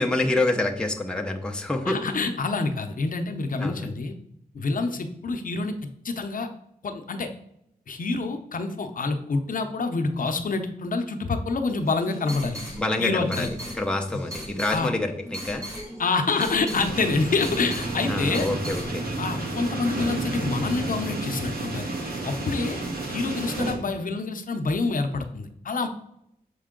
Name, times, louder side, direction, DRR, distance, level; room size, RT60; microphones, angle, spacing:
voice 1, 0.0-2.0 3.6-3.9 12.8-13.5 13.7-15.7 18.1-19.0, left 2 dB, 5° left, 3 dB, 0.5 m, -27 dB
voice 2, 1.9-4.2 4.5-5.7 6.0-6.5 6.8-7.3 7.9-12.6 13.0-13.5 14.7-14.9 16.0-18.8 19.2-21.9 22.2-22.8 23.1-25.9, left 3 dB, 60° left, 6 dB, 0.6 m, -27 dB
sound 1, 11.8-18.9, equal, 20° right, 2.5 m, -38 dB
sound 2, 16.7-23.7, right 2 dB, 75° right, 1.3 m, -31 dB
6.6 x 4.4 x 3.7 m, 0.76 s
wide cardioid pair, 145°, 16 cm